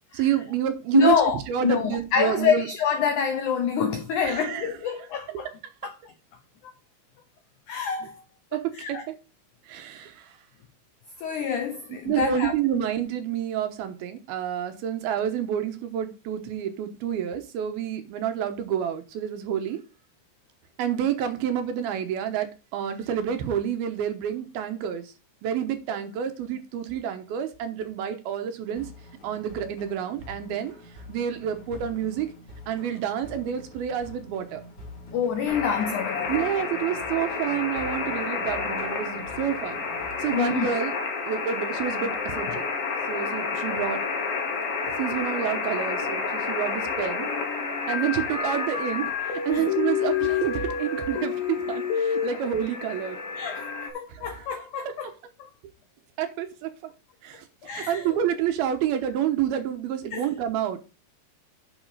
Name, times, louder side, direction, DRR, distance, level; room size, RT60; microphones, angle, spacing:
voice 1, 0.1-1.1 1.5-2.7 4.2-4.7 8.5-9.0 9.7-10.3 12.1-19.8 20.8-25.1 25.4-28.9 29.2-30.7 31.1-32.3 32.7-34.6 36.3-39.9 40.2-41.0 41.3-42.6 43.1-44.0 45.0-47.3 47.9-49.1 49.5-53.2 54.1-54.4 56.2-56.7 57.2-60.8, right 9 dB, 75° right, 2.7 m, -28 dB
voice 2, 0.9-5.5 5.8-5.9 6.6-6.7 7.7-8.2 8.7-9.0 11.2-12.9 35.1-36.5 40.3-40.7 42.5-42.6 49.5-49.7 53.3-53.7 53.9-55.1 55.4-55.5 57.6-58.2 60.1-60.3, left 7 dB, 85° left, 1.7 m, -27 dB
sound 1, 28.8-40.7, left 2 dB, 40° left, 3.1 m, -46 dB
sound 2, 35.5-53.9, left 5 dB, 60° left, 3.2 m, -29 dB
10.5 x 4.9 x 4.8 m
omnidirectional pair, 4.9 m